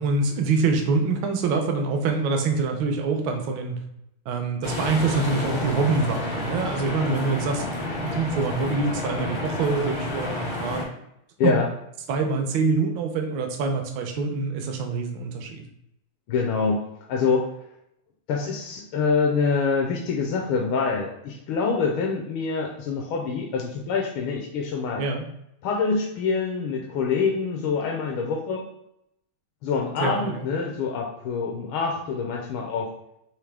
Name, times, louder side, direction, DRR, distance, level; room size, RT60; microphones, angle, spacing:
voice 1, 0.0-3.8 4.3-7.7 8.0-10.8 11.4-11.5 12.1-15.6 25.0-25.2 30.0-30.5, right 4 dB, 70° right, 3 dB, 1.3 m, -25 dB
sound 1, 4.6-10.8, left 2 dB, 50° left, 0.6 m, -30 dB
voice 2, 16.3-16.8 17.1-17.5 18.3-25.0 25.6-28.6 29.6-32.9, left 5 dB, 75° left, 0 dB, 1.4 m, -25 dB
4.9 x 3.0 x 3.3 m, 0.80 s
omnidirectional pair, 2.4 m